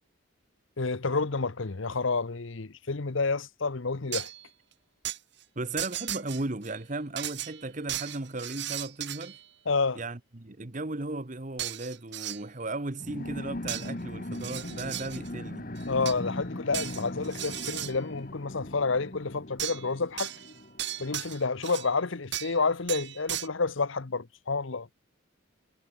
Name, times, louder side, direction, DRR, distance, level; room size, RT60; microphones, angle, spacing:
voice 1, 0.8-4.3 9.7-10.0 15.9-20.3 21.0-24.9, left 4 dB, 65° left, 1.0 m, -29 dB
sound 1, 4.1-4.5 5.0-5.2 5.8-6.7 7.2-9.4 11.6-12.4 13.7-13.9 14.3-15.3 15.8-16.3 16.7-18.0 19.6-19.9 20.2-21.9 22.3-22.6 22.9-23.5, right 12 dB, 55° right, 5.5 m, -36 dB
voice 2, 5.6-9.4 10.0-15.7, right 2 dB, 35° right, 1.1 m, -36 dB
sound 2, 13.0-21.2, left 1 dB, 40° left, 1.8 m, -39 dB
head